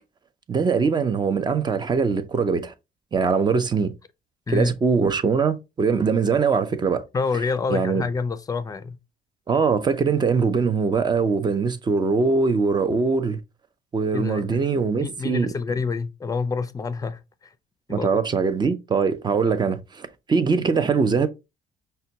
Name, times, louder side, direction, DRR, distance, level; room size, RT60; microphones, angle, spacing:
voice 1, 0.5-2.7 3.1-3.9 4.5-7.0 7.7-8.0 9.5-13.4 13.9-15.5 17.9-21.3, right 5 dB, 25° right, 0.5 m, -22 dB
voice 2, 7.1-9.0 14.1-14.6 15.0-17.2 17.9-18.1, left 4 dB, 20° left, 0.5 m, -27 dB
5.5 x 2.2 x 2.7 m
cardioid pair, 110°, 17 cm